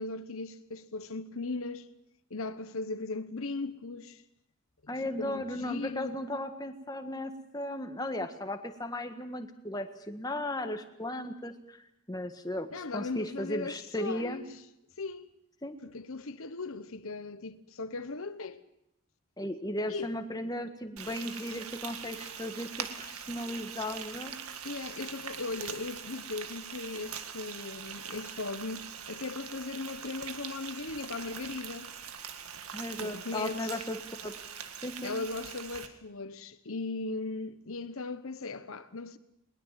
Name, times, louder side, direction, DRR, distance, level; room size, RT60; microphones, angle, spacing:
voice 1, 0.0-1.9 2.3-4.2 4.8-6.2 12.7-14.6 15.0-15.3 15.8-18.6 19.9-20.1 24.6-31.9 33.0-33.8 35.0-39.2, left 3 dB, 70° left, 1.1 m, -38 dB
voice 2, 4.9-14.4 15.6-15.8 19.4-24.4 32.7-34.5 34.8-35.1, left 1 dB, 15° left, 1.6 m, -36 dB
Frying (food), 21.0-35.9, right 7 dB, 85° right, 1.9 m, -42 dB
21.0 x 20.5 x 7.6 m
head